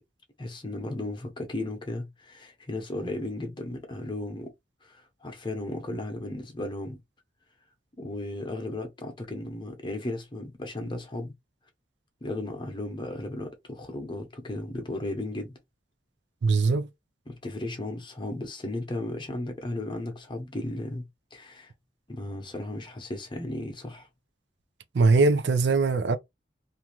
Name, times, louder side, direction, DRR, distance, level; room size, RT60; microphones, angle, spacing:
voice 1, 0.4-4.5 4.8-7.0 8.0-11.3 12.2-15.5 17.3-21.7 22.1-24.1, left 1 dB, 25° left, 0.8 m, -35 dB
voice 2, 16.4-16.9 24.9-26.2, right 3 dB, 75° right, 0.5 m, -21 dB
2.6 x 2.3 x 2.8 m
head